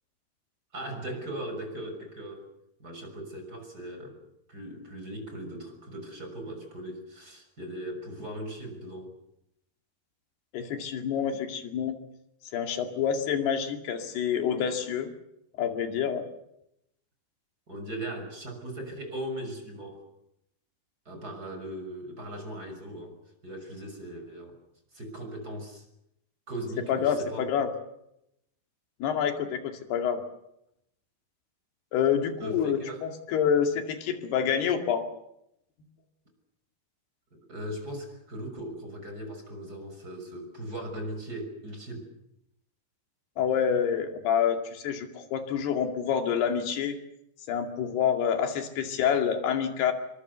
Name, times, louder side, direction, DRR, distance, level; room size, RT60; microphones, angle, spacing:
voice 1, 0.7-2.4 2.8-4.2 4.5-9.1 17.7-20.0 21.1-23.1 23.4-24.6 24.9-25.8 26.5-27.5 32.4-33.1 37.3-42.1, right 1 dB, 20° right, 5 dB, 6.5 m, -38 dB
voice 2, 10.5-12.0 12.5-15.1 15.6-16.2 26.9-27.7 29.0-30.2 31.9-32.8 33.3-35.0 43.4-47.0 47.5-49.9, left 8 dB, 85° left, 5 dB, 4.4 m, -27 dB
27.5 x 24.0 x 6.9 m, 0.80 s
omnidirectional pair, 4.5 m